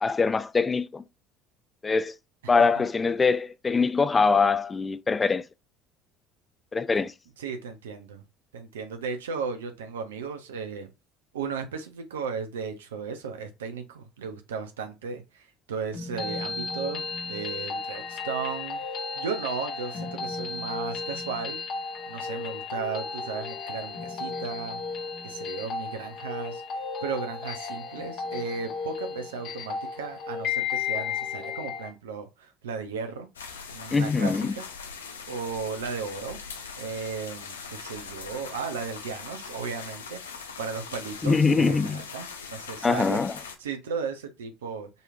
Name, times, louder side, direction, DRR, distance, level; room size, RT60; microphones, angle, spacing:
voice 1, 0.0-1.0 1.8-2.1 2.5-5.4 6.7-7.1 33.9-34.5 41.2-42.0 42.8-43.3, left 4 dB, 25° left, 0.4 m, -23 dB
voice 2, 7.4-8.2 8.5-10.9 11.3-21.6 22.1-24.8 25.2-26.6 27.0-33.3 33.7-34.6 35.3-36.4 36.8-43.2 43.6-44.9, right 5 dB, 80° right, 0.8 m, -35 dB
sound 1, 15.9-31.9, left 5 dB, 55° left, 1.3 m, -34 dB
sound 2, 33.3-43.6, left 5 dB, 85° left, 0.6 m, -41 dB
5.3 x 3.1 x 2.5 m
hypercardioid pair, 65°, 0 cm